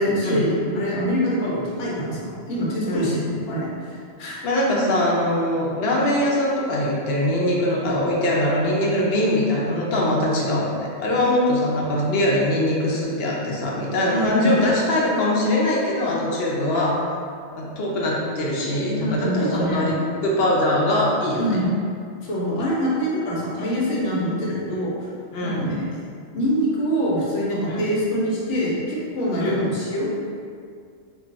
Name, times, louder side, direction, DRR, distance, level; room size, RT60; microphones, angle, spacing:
voice 1, 0.0-3.9 4.2-4.4 14.1-14.6 19.0-19.9 21.4-21.7 22.2-25.1 25.4-26.0 26.3-30.1, equal, 85° left, -5 dB, 1.1 m, -24 dB
voice 2, 2.9-3.2 4.4-17.0 17.5-20.0 20.2-21.6 25.3-25.7 27.7-27.8 29.4-29.6, left 1 dB, 65° left, -3 dB, 0.8 m, -22 dB
2.3 x 2.3 x 3.8 m, 2.2 s
omnidirectional pair, 1.2 m